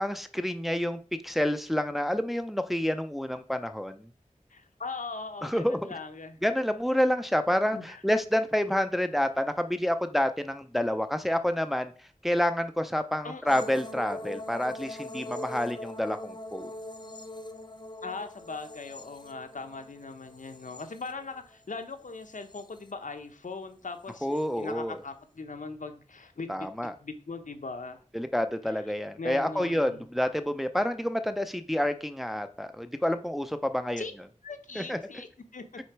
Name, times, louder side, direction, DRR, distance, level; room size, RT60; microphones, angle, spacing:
voice 1, 0.0-4.1 5.4-5.8 6.4-11.9 12.2-16.7 24.2-25.0 26.5-26.9 28.1-34.0 34.8-35.0, left 1 dB, ahead, 8 dB, 0.5 m, -28 dB
voice 2, 4.5-6.4 7.7-8.0 13.2-13.7 18.0-26.7 27.0-28.0 28.6-28.8 29.2-30.0 34.0-34.1 34.4-35.8, left 4 dB, 85° left, 7 dB, 0.8 m, -40 dB
sound 1, 13.5-21.6 22.1-22.9 24.1-24.4, left 1 dB, 35° left, 0.8 m, -42 dB
6.3 x 3.9 x 4.6 m, 0.41 s
wide cardioid pair, 55°, 13 cm